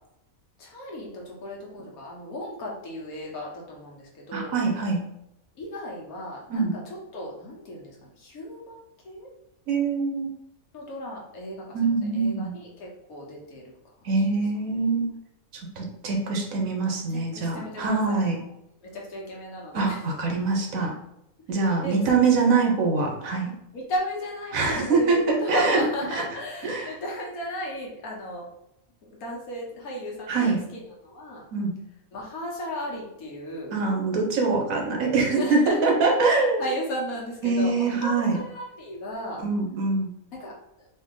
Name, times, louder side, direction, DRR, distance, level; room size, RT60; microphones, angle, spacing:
voice 1, 0.6-4.6 5.6-6.8 7.1-9.3 10.7-13.8 14.3-14.4 17.1-18.5 18.8-20.0 21.6-22.0 22.5-22.6 23.7-28.4 29.2-31.4 32.1-33.7 35.3-35.8 36.6-39.4 40.3-40.5 40.8-40.9, equal, 85° left, -2 dB, 1.6 m, -35 dB
voice 2, 4.3-5.0 6.5-6.7 9.7-10.3 11.7-12.5 14.0-15.1 15.8-18.4 19.7-20.9 21.5-23.5 24.5-25.8 26.6-26.9 30.3-30.6 31.5-31.7 33.7-36.6 37.4-38.4 39.4-40.1, right 4 dB, 70° right, 1 dB, 1.2 m, -24 dB
4.1 x 2.7 x 3.7 m, 0.83 s
omnidirectional pair, 1.5 m